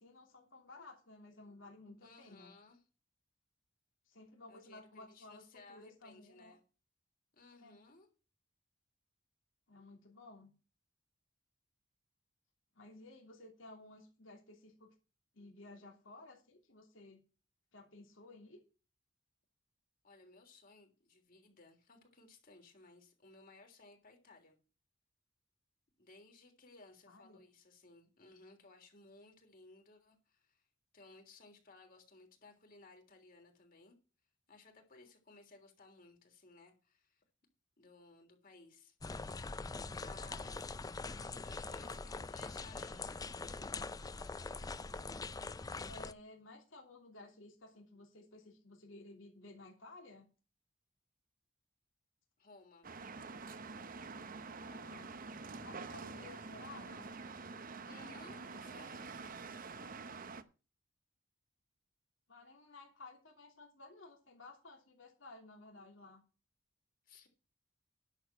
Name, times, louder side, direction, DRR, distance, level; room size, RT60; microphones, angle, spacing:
voice 1, 0.0-2.5 4.1-6.6 7.6-7.8 9.7-10.5 12.7-14.9 15.3-17.2 17.7-18.6 27.1-27.4 40.5-40.6 41.6-42.0 45.8-50.3 54.6-55.1 55.6-57.2 62.3-66.2, left 2 dB, 75° left, 3.0 m, -55 dB
voice 2, 2.0-2.8 4.5-6.6 7.3-8.1 20.0-24.6 26.0-30.6 30.9-34.0 34.5-37.2 37.8-39.3 39.9-40.8 41.4-43.7 52.4-52.9 55.8-56.4 57.8-59.1 67.0-67.3, left 3 dB, 45° left, 3.3 m, -60 dB
sound 1, 39.0-46.1, left 3 dB, 20° left, 0.4 m, -43 dB
sound 2, 52.8-60.4, right 4 dB, 45° right, 0.8 m, -47 dB
10.5 x 7.2 x 5.8 m
head